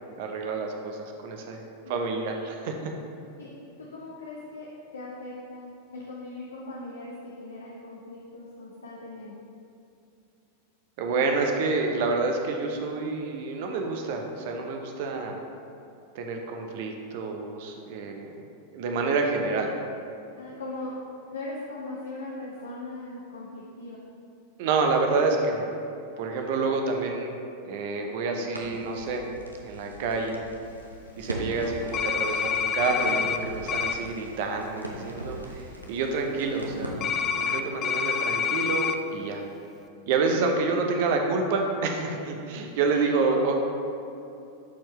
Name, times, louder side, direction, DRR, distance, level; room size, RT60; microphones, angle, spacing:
voice 1, 0.2-1.6 1.9-2.9 11.0-15.4 16.1-18.4 18.7-19.7 24.6-25.7 26.2-27.4 27.7-29.3 29.6-30.4 31.2-37.1 37.3-39.4 40.1-43.6, right 4 dB, 50° right, 3 dB, 0.8 m, -28 dB
voice 2, 3.8-9.3 19.4-19.6 20.4-20.9 21.3-24.0 42.9-43.4, left 2 dB, 70° left, -4 dB, 0.8 m, -39 dB
Crackle, 28.5-37.7, right 1 dB, 85° right, 0.8 m, -40 dB
sound 1, 31.9-33.4 33.7-33.9 37.0-39.0, left 7 dB, 30° left, 0.4 m, -27 dB
11.5 x 4.5 x 3.1 m, 2.7 s
figure-of-eight pair, 90°, 0 cm